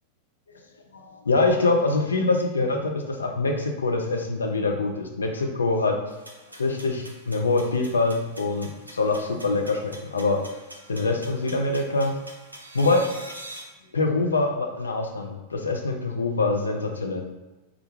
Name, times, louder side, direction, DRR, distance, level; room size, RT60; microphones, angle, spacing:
voice 1, 0.9-6.0 6.5-10.4 10.9-12.2 12.7-13.1 13.9-17.2, left 3 dB, 75° left, 3 dB, 0.3 m, -24 dB
sound 1, 6.1-13.6, right 1 dB, 85° right, 0.3 m, -45 dB
2.4 x 2.2 x 3.0 m, 1.1 s
figure-of-eight pair, 90°, 0 cm